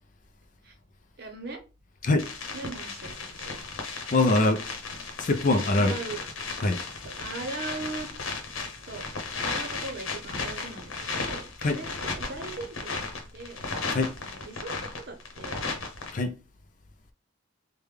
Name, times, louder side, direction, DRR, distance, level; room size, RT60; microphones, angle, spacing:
voice 1, 1.2-1.6 2.5-3.6 5.8-6.2 7.0-8.1 8.9-9.1 9.4-13.6 14.2-15.6, right 3 dB, 50° right, 0.8 m, -39 dB
sound 1, 2.2-16.1, left 4 dB, 85° left, 0.9 m, -35 dB
voice 2, 4.1-4.7 5.2-5.9 6.6-6.8 11.6-11.8 13.9-14.2 16.1-16.4, left 2 dB, 40° left, 0.4 m, -23 dB
3.4 x 2.2 x 3.3 m
head